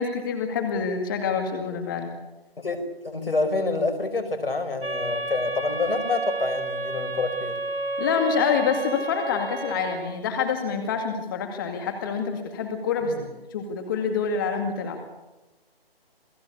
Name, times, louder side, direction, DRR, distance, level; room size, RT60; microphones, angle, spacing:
voice 1, 0.0-2.1 8.0-13.1 13.5-15.0, left 6 dB, 20° left, 5 dB, 2.2 m, -26 dB
voice 2, 2.6-7.6 13.0-13.3, left 3 dB, 65° left, 8 dB, 5.3 m, -27 dB
sound 1, 4.8-10.0, right 3 dB, 70° right, 4.1 m, -31 dB
28.0 x 18.0 x 8.5 m, 1.1 s
figure-of-eight pair, 160°, 30 cm